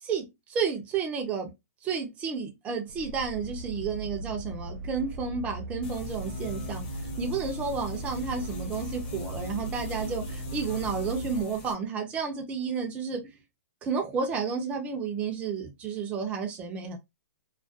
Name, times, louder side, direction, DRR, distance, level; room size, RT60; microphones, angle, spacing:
voice 1, 0.0-1.5 1.8-13.2 13.8-17.0, right 5 dB, 15° right, 0.6 m, -31 dB
sound 1, 2.9-11.4, right 1 dB, 70° right, 0.4 m, -38 dB
sound 2, 5.8-11.7, left 3 dB, 35° left, 1.0 m, -41 dB
2.4 x 2.1 x 2.5 m
hypercardioid pair, 155°, 8 cm